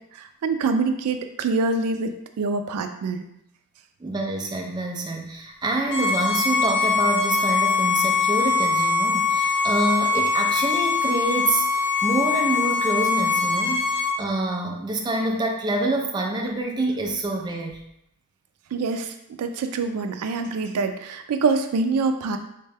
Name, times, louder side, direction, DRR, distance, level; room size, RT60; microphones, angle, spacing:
voice 1, 0.1-3.3 18.7-22.4, right 4 dB, 90° right, 8 dB, 0.3 m, -25 dB
voice 2, 4.0-17.8, right 2 dB, 20° right, 1 dB, 0.4 m, -26 dB
Bowed string instrument, 5.9-14.1, left 4 dB, 55° left, 1.0 m, -22 dB
3.5 x 2.2 x 3.3 m, 0.80 s
head